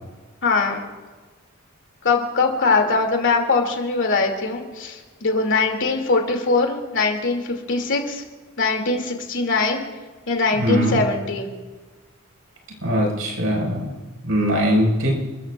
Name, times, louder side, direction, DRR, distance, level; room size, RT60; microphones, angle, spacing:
voice 1, 0.4-0.8 2.0-8.2 8.6-9.8 10.3-11.5, left 3 dB, 60° left, 2 dB, 2.8 m, -21 dB
voice 2, 10.6-11.0 12.8-13.9 14.2-15.1, equal, 75° right, -1 dB, 5.5 m, -21 dB
29.5 x 14.5 x 2.5 m, 1.3 s
head